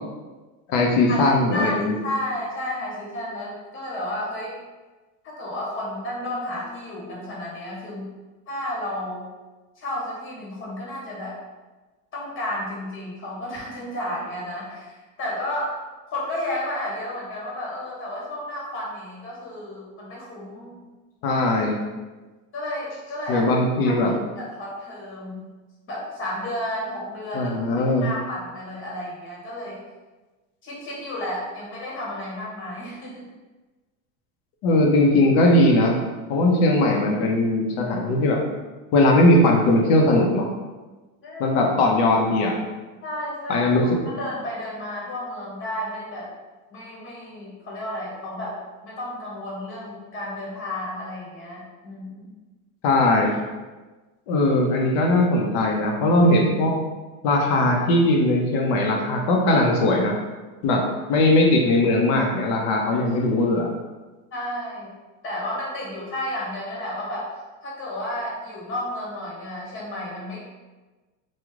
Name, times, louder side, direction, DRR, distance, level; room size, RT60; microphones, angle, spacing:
voice 1, 0.7-2.0 21.2-21.8 23.3-24.1 27.3-28.1 34.6-36.0 36.3-38.4 38.9-40.5 41.4-42.5 43.5-44.0 52.8-53.4 54.3-56.7 57.2-60.2 60.6-60.8 61.1-63.7, left 1 dB, 55° left, 1 dB, 0.9 m, -19 dB
voice 2, 2.0-4.6 5.2-8.1 8.5-9.3 9.8-11.3 12.1-15.7 16.1-20.8 22.5-23.4 23.8-25.4 25.9-27.5 27.9-29.8 30.6-33.3 41.2-41.6 43.0-46.3 46.7-48.6 48.8-52.4 64.3-64.9 65.2-67.3 67.6-70.4, left 1 dB, 25° left, -5 dB, 1.3 m, -32 dB
3.1 x 2.4 x 3.6 m, 1.2 s
supercardioid pair, 130°, 45 cm